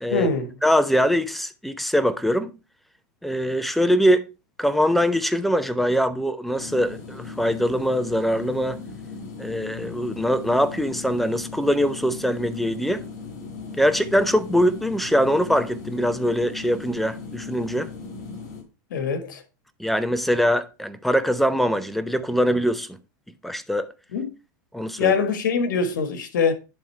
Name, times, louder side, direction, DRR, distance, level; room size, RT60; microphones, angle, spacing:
voice 1, 0.1-0.5 18.9-19.4 24.1-24.3 25.0-26.5, left 5 dB, 85° left, 1.5 m, -23 dB
voice 2, 0.6-2.5 3.2-4.3 4.6-8.8 9.4-13.0 13.8-17.9 19.8-22.9 23.4-23.9 24.7-25.1, equal, ahead, 0.7 m, -22 dB
sound 1, 6.6-18.6, left 4 dB, 65° left, 3.4 m, -37 dB
11.0 x 3.6 x 4.5 m
supercardioid pair, 125°, 10 cm